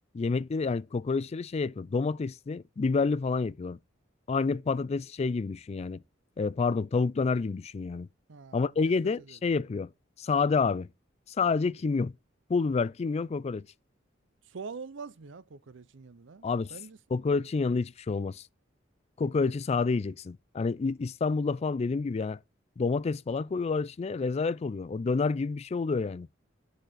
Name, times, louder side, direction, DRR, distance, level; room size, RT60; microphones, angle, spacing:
voice 1, 0.1-3.8 4.3-6.0 6.4-8.1 8.5-9.9 10.2-10.9 11.4-12.1 12.5-13.7 16.4-16.7 17.1-18.4 19.2-22.4 22.8-26.3, left 4 dB, 35° left, 0.3 m, -28 dB
voice 2, 8.3-9.4 14.4-17.0, right 5 dB, 75° right, 0.6 m, -45 dB
10.5 x 4.2 x 3.9 m
head